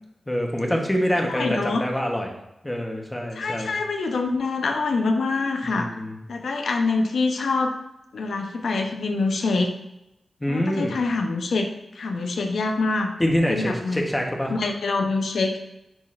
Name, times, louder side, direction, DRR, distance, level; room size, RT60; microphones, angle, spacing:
voice 1, 0.3-2.4 2.6-3.7 5.6-6.2 10.4-11.0 13.2-14.5, equal, 15° left, 1 dB, 1.0 m, -25 dB
voice 2, 1.2-1.9 3.4-5.9 6.3-7.7 8.1-9.7 10.5-11.7 11.9-13.1 13.5-14.0 14.5-15.7, left 3 dB, 85° left, 4 dB, 0.8 m, -25 dB
10.5 x 4.0 x 2.5 m, 0.88 s
wide cardioid pair, 135°, 0 cm